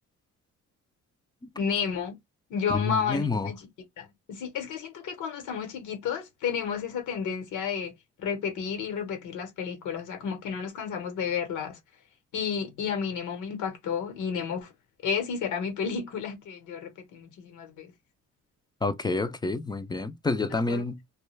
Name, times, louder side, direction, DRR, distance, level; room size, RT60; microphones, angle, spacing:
voice 1, 1.6-2.2 2.5-3.7 4.0-7.9 8.2-11.8 12.3-14.7 15.0-17.9 20.7-20.8, left 6 dB, 80° left, 1.1 m, -31 dB
voice 2, 2.7-3.5 18.8-21.0, left 3 dB, 15° left, 0.4 m, -28 dB
2.3 x 2.3 x 3.1 m
cardioid pair, 90°, 30 cm